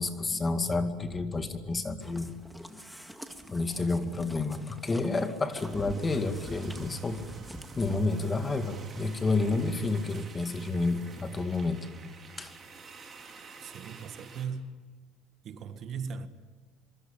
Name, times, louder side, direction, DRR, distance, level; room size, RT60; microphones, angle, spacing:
voice 1, 0.0-2.4 2.7-2.8 3.5-7.2 7.8-11.9 12.4-12.5, left 3 dB, 20° left, 2.2 m, -30 dB
sound 1, 2.0-10.3 10.7-10.8 11.3-11.4 11.5-11.6, equal, ahead, 2.0 m, -45 dB
sound 2, 5.5-14.5, right 4 dB, 25° right, 4.1 m, -49 dB
voice 2, 13.6-14.7 15.4-16.3, right 6 dB, 45° right, 1.6 m, -38 dB
26.0 x 24.0 x 9.0 m
cardioid pair, 135°, 0 cm